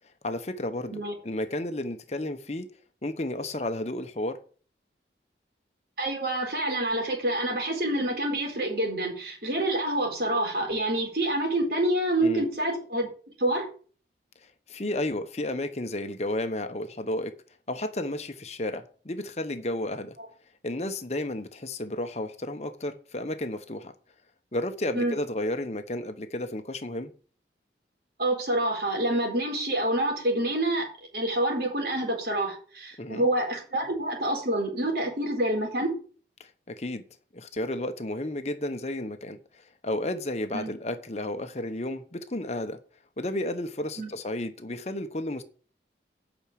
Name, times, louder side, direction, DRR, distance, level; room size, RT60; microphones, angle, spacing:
voice 1, 0.2-2.7 3.0-4.4 12.2-12.4 14.7-17.3 17.7-20.2 20.6-23.9 24.5-27.1 33.0-33.3 36.4-37.0 37.3-39.4 39.8-42.8 43.2-45.4, left 1 dB, 35° left, 1.0 m, -32 dB
voice 2, 6.0-13.1 13.4-13.7 24.9-25.2 28.2-30.9 31.1-36.0 40.5-40.7 44.0-44.1, right 1 dB, 60° right, 4.3 m, -27 dB
9.0 x 6.1 x 8.4 m
head